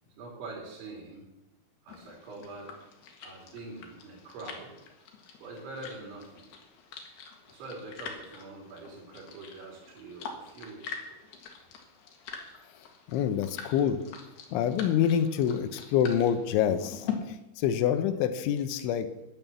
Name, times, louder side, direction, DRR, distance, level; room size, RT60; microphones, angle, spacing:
voice 1, 0.0-1.3 1.8-2.8 3.2-4.8 5.4-6.5 7.5-11.2, right 3 dB, 75° right, -1 dB, 5.7 m, -44 dB
sound 1, 1.9-17.1, left 7 dB, 65° left, 3.3 m, -44 dB
voice 2, 13.1-14.0 14.5-19.1, left 9 dB, 80° left, 10 dB, 3.2 m, -27 dB
11.0 x 9.0 x 7.0 m, 0.91 s
omnidirectional pair, 5.4 m